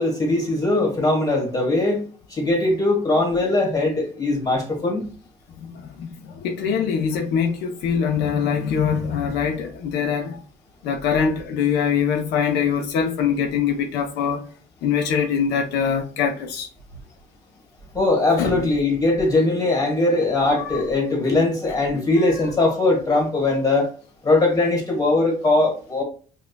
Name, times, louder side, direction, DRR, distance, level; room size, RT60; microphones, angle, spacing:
voice 1, 0.0-2.0 2.3-5.1 17.9-23.9 24.2-26.0, left 2 dB, 20° left, 1.4 m, -20 dB
voice 2, 6.4-10.4 10.8-14.4 14.8-16.7 18.4-18.7 20.6-20.9 22.2-22.3, left 7 dB, 85° left, 0.6 m, -23 dB
5.2 x 2.3 x 2.2 m
cardioid pair, 110°, 17 cm